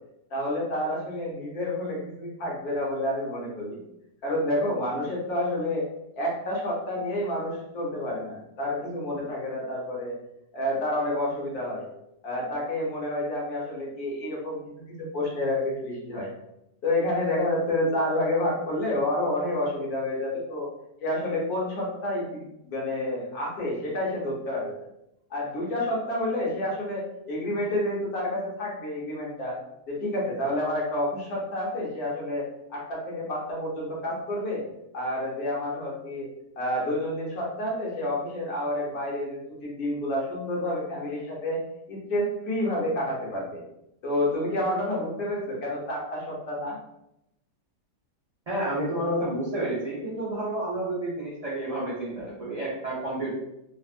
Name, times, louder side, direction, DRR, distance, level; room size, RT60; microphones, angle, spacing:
voice 1, 0.3-3.8 4.2-5.9 6.1-10.1 10.5-11.9 12.2-16.3 16.8-20.7 21.0-24.7 25.3-29.6 29.9-34.6 34.9-36.3 36.6-41.6 41.9-43.6 44.0-46.8, left 1 dB, 65° left, -4 dB, 1.3 m, -29 dB
voice 2, 48.5-53.3, right 1 dB, 70° right, -7 dB, 0.3 m, -30 dB
3.4 x 2.4 x 2.4 m, 0.85 s
omnidirectional pair, 1.8 m